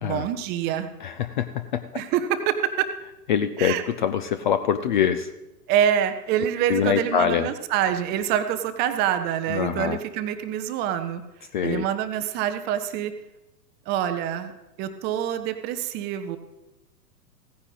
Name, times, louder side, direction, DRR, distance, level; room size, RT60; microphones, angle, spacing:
voice 1, 0.0-0.9 1.9-2.9 3.6-3.8 5.7-11.2 11.6-13.1 13.9-14.5 14.8-16.4, right 10 dB, 20° right, 9 dB, 0.6 m, -26 dB
voice 2, 1.0-1.8 3.3-5.3 6.7-7.5 9.5-10.0 11.5-11.9, left 8 dB, 35° left, 10 dB, 0.4 m, -24 dB
16.0 x 9.7 x 4.0 m, 0.99 s
figure-of-eight pair, 110°, 48 cm